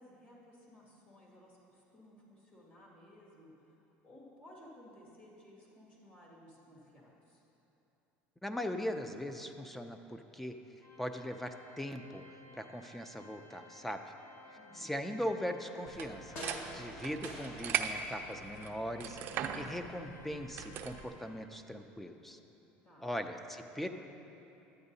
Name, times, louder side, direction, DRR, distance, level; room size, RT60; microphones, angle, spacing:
voice 1, 0.0-3.7 4.0-7.4 14.5-15.1 22.8-23.1, left 1 dB, 35° left, -4 dB, 2.1 m, -57 dB
voice 2, 8.4-10.6 11.0-12.2 12.5-14.1 14.7-22.4 23.0-23.9, equal, 5° left, 7 dB, 0.4 m, -40 dB
Organ, 10.8-21.5, left 2 dB, 85° left, 1.2 m, -58 dB
sound 1, 15.7-18.1 18.4-19.5 19.8-19.9, left 1 dB, 55° left, 1.5 m, -49 dB
sound 2, 15.9-21.1, right 8 dB, 50° right, 0.4 m, -40 dB
11.0 x 8.7 x 2.7 m, 3.0 s
cardioid pair, 130°, 4 cm